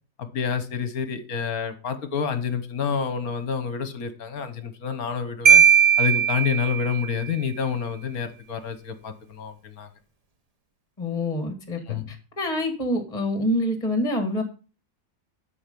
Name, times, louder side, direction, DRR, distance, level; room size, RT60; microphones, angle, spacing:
voice 1, 0.2-5.6 6.0-9.9 11.9-12.1, left 7 dB, 60° left, 11 dB, 1.5 m, -28 dB
Marimba xylophone, 5.5-7.2, right 7 dB, 30° right, 0.7 m, -18 dB
voice 2, 11.0-11.8 12.1-14.4, left 1 dB, 20° left, 6 dB, 1.9 m, -26 dB
12.0 x 4.8 x 5.3 m, 0.36 s
omnidirectional pair, 1.9 m